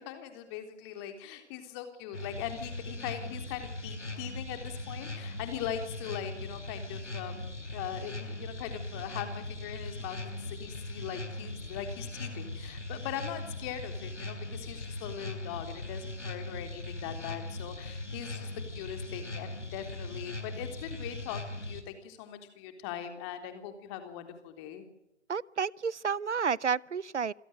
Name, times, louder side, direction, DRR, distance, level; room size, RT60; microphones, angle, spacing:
voice 1, 0.0-24.8, left 9 dB, 25° left, 3.5 m, -41 dB
sound 1, 2.1-21.8, left 2 dB, 90° left, 4.5 m, -40 dB
voice 2, 25.3-27.3, right 6 dB, 80° right, 0.9 m, -30 dB
28.0 x 17.0 x 7.8 m
figure-of-eight pair, 140°, 35 cm